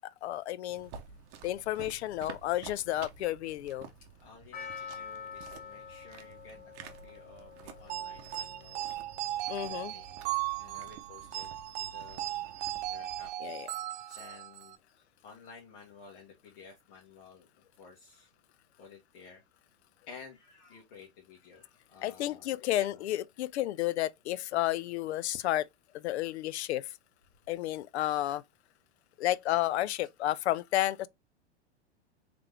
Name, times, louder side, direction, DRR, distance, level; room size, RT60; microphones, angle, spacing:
voice 1, 0.2-0.9 1.4-3.9 9.5-9.9 13.4-13.7 22.0-25.7 25.9-26.8 27.5-28.4 29.2-31.1, left 14 dB, 70° left, 0.5 m, -31 dB
sound 1, 0.7-13.3, right 6 dB, 40° right, 0.8 m, -51 dB
voice 2, 4.2-8.9 9.5-10.2 10.5-11.5 11.8-12.6 12.9-13.6 14.1-18.3 18.8-19.4 20.1-23.0, left 5 dB, 50° left, 1.6 m, -53 dB
Percussion, 4.5-9.5, left 7 dB, 30° left, 1.3 m, -47 dB
sound 2, 7.9-14.8, right 14 dB, 25° right, 0.4 m, -37 dB
3.6 x 3.3 x 3.3 m
hypercardioid pair, 135°, 34 cm